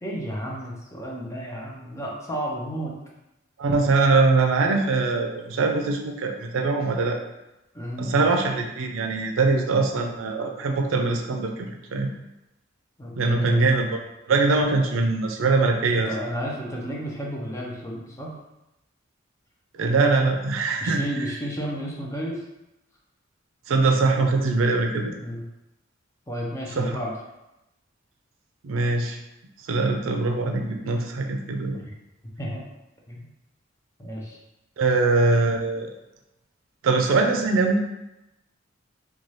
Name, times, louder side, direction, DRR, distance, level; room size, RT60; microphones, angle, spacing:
voice 1, 0.0-3.0 7.7-8.2 13.0-13.6 15.9-18.4 20.8-22.4 25.2-25.4 26.3-27.1 31.7-31.8 32.4-32.6 33.1-33.3 34.0-34.4, equal, 15° left, -3 dB, 0.5 m, -32 dB
voice 2, 3.6-7.2 8.0-12.1 13.2-14.0 14.3-16.1 19.8-21.0 23.7-25.1 26.8-27.0 28.6-29.2 29.7-31.8 34.8-35.9 36.8-37.8, right 3 dB, 85° right, 3 dB, 0.4 m, -22 dB
2.7 x 2.3 x 3.1 m, 0.93 s
head